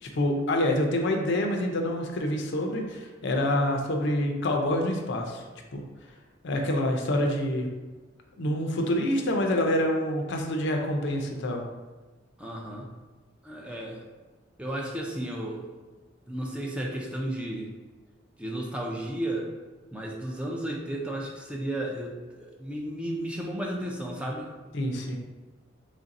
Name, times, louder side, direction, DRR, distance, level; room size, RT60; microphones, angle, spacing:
voice 1, 0.0-5.4 5.7-5.8 6.4-7.7 8.4-11.6 24.7-25.2, left 1 dB, 65° left, 2 dB, 0.5 m, -27 dB
voice 2, 12.4-12.9 13.4-14.0 14.6-15.7 16.3-17.7 18.4-19.5 19.9-24.5, right 1 dB, 5° right, -1 dB, 0.4 m, -33 dB
3.3 x 2.5 x 4.0 m, 1.3 s
head